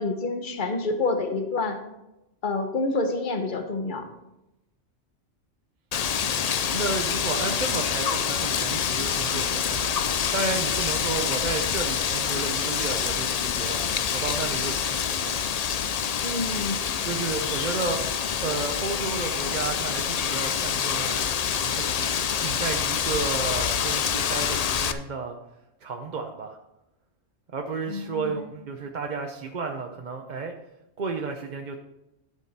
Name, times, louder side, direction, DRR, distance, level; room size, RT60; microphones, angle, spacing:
voice 1, 0.0-1.8 2.4-4.1 16.2-16.8 27.9-28.4, left 3 dB, 45° left, 6 dB, 1.2 m, -28 dB
Wind, 5.9-24.9, left 7 dB, 60° left, 0.4 m, -26 dB
voice 2, 6.7-13.8 14.1-15.4 17.1-18.0 18.4-21.2 21.6-22.1 22.4-25.4 25.8-26.6 27.5-30.5 31.0-31.8, right 4 dB, 45° right, 3 dB, 0.8 m, -32 dB
11.5 x 6.6 x 4.2 m, 0.91 s
omnidirectional pair, 1.3 m